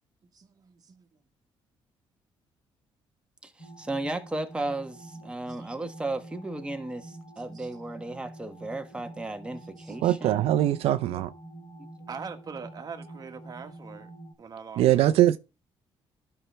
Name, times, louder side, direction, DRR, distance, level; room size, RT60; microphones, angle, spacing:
voice 1, 0.3-1.1 5.6-5.7 7.5-7.7 9.8-9.9 12.1-14.1 14.4-15.0, right 5 dB, 40° right, 1.5 m, -42 dB
voice 2, 3.4-10.5 11.8-11.9, right 2 dB, 10° right, 1.3 m, -35 dB
sound 1, 3.6-14.3, right 2 dB, 45° left, 2.9 m, -46 dB
voice 3, 10.0-11.3 14.8-15.4, right 13 dB, 85° right, 0.5 m, -22 dB
12.0 x 5.7 x 3.4 m
cardioid pair, 105°, 10 cm